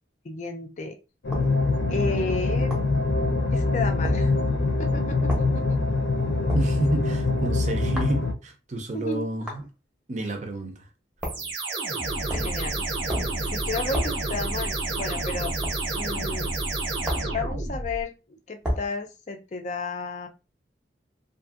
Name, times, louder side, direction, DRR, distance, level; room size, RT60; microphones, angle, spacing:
voice 1, 0.2-1.0 1.9-2.7 3.5-4.3 4.8-5.6 8.9-9.3 12.3-12.9 13.5-15.5 15.9-16.5 17.2-18.1 18.5-20.3, left 3 dB, 40° left, 0.4 m, -32 dB
sound 1, 1.2-8.3, left 3 dB, 85° left, 0.6 m, -24 dB
sound 2, 1.3-1.5 2.7-2.9 4.0-4.2 5.3-5.5 6.5-6.7 8.0-8.2 9.5-9.7 11.2-11.5 12.3-12.6 13.1-13.4 13.9-14.2 15.6-15.8 17.0-17.4 18.6-18.9, equal, 5° right, 0.7 m, -30 dB
voice 2, 6.5-9.6 10.1-10.8, right 2 dB, 40° right, 0.5 m, -30 dB
sound 3, 11.2-18.0, right 2 dB, 85° right, 0.8 m, -29 dB
2.6 x 2.6 x 2.4 m
head